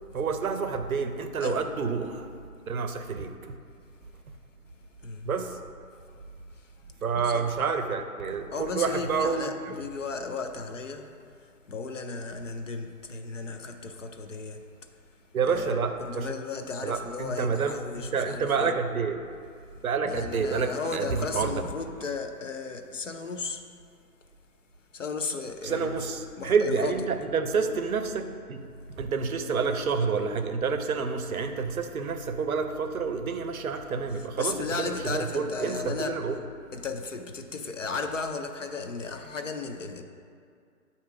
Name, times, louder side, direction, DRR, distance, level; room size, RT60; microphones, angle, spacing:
voice 1, 0.1-2.3 2.7-3.3 5.2-5.6 7.0-9.5 15.3-16.3 16.8-19.2 19.8-21.6 25.6-28.6 29.0-36.4, right 5 dB, 65° right, 7 dB, 0.6 m, -28 dB
voice 2, 7.1-7.5 8.5-14.9 15.4-18.7 20.0-23.6 24.9-26.0 26.4-27.0 34.4-36.2 36.7-40.0, left 4 dB, 55° left, 5 dB, 0.5 m, -35 dB
8.1 x 2.9 x 4.6 m, 2.3 s
hypercardioid pair, 175°, 46 cm